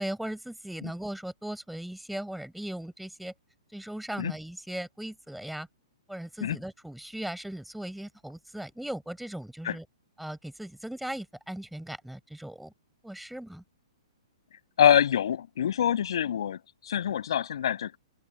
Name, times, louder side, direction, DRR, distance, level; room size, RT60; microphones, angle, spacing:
voice 1, 0.0-3.3 3.7-5.7 6.1-9.8 10.2-12.7 13.0-13.6, right 1 dB, ahead, 6.5 m, -38 dB
voice 2, 14.8-18.0, left 9 dB, 65° left, 6.2 m, -25 dB
open air
figure-of-eight pair, 120°, 3 cm